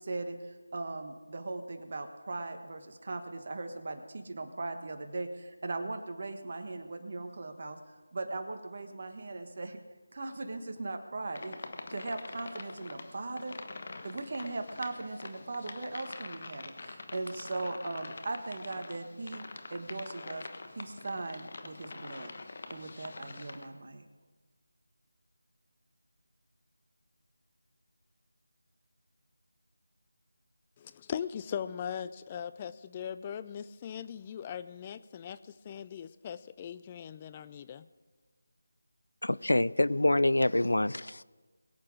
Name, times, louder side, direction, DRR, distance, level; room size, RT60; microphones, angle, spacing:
voice 1, 0.0-7.8 8.1-9.8 10.1-11.6 11.9-13.6 14.0-19.4 19.7-20.5 20.8-22.3 22.7-24.0, right 2 dB, 45° right, 6 dB, 1.4 m, -39 dB
sound 1, 11.3-23.7, left 3 dB, 45° left, 1.1 m, -45 dB
voice 2, 30.8-35.4 35.6-37.9, left 8 dB, 20° left, 14 dB, 0.4 m, -39 dB
voice 3, 39.2-41.2, left 1 dB, 80° left, 19 dB, 0.4 m, -26 dB
22.5 x 8.3 x 4.9 m, 1.3 s
figure-of-eight pair, 165°, 0 cm